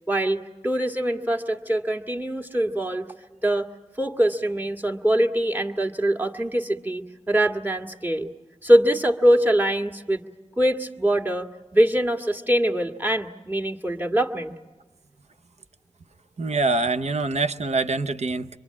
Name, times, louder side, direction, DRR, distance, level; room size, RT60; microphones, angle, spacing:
voice 1, 0.1-3.1 3.4-3.7 4.0-8.3 8.6-10.2 10.6-11.5 11.7-14.5, right 1 dB, 15° right, 2 dB, 1.9 m, -23 dB
voice 2, 16.4-18.6, right 3 dB, 75° right, 10 dB, 0.9 m, -25 dB
27.0 x 23.0 x 8.6 m, 1.2 s
cardioid pair, 45°, 12 cm